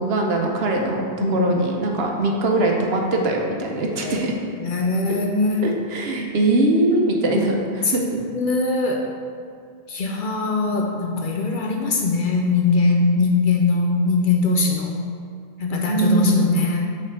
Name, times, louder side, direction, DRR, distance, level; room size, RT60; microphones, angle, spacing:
voice 1, 0.0-1.0 1.3-4.3 5.6-8.0 15.7-16.6, right 2 dB, 70° right, 1 dB, 1.0 m, -21 dB
voice 2, 1.2-1.5 4.0-4.1 4.6-5.6 7.8-7.9 8.2-9.1 9.9-15.0 15.6-16.8, left 3 dB, 60° left, 1 dB, 0.7 m, -21 dB
6.0 x 3.4 x 4.5 m, 2.2 s
omnidirectional pair, 1.1 m